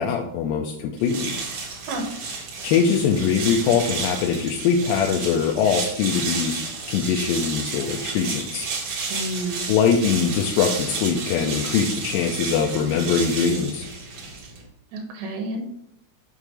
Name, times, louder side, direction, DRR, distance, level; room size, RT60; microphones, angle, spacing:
voice 1, 0.0-1.3 2.6-6.6 6.9-8.7 9.7-13.9, left 6 dB, 80° left, 2 dB, 2.3 m, -22 dB
sound 1, 1.0-14.7, right 4 dB, 55° right, 2.1 m, -31 dB
voice 2, 9.1-9.6 14.9-15.6, right 2 dB, 85° right, 2 dB, 3.0 m, -30 dB
6.8 x 3.6 x 6.2 m, 0.76 s
omnidirectional pair, 4.3 m